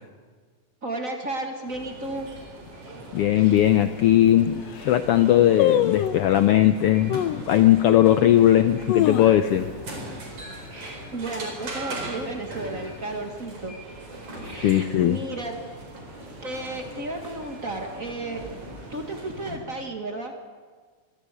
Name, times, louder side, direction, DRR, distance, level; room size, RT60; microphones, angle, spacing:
voice 1, 0.8-2.3 10.7-13.8 14.4-15.6 16.4-18.4 18.9-20.3, right 2 dB, 35° right, 3 dB, 1.7 m, -33 dB
sound 1, 1.7-19.6, right 2 dB, 50° right, 5.3 m, -40 dB
voice 2, 3.1-9.7 14.6-15.2, left 12 dB, 90° left, 10 dB, 1.2 m, -19 dB
sound 2, 3.6-3.7 4.3-4.4 4.6-5.0 5.6-6.3 7.1-7.5 8.0-8.1 8.6-9.8 10.1-10.2 10.5-10.9 11.3-11.6 12.3-13.0 13.3-13.4, left 11 dB, 75° left, 1.6 m, -25 dB
25.0 x 13.5 x 8.3 m, 1.6 s
omnidirectional pair, 3.4 m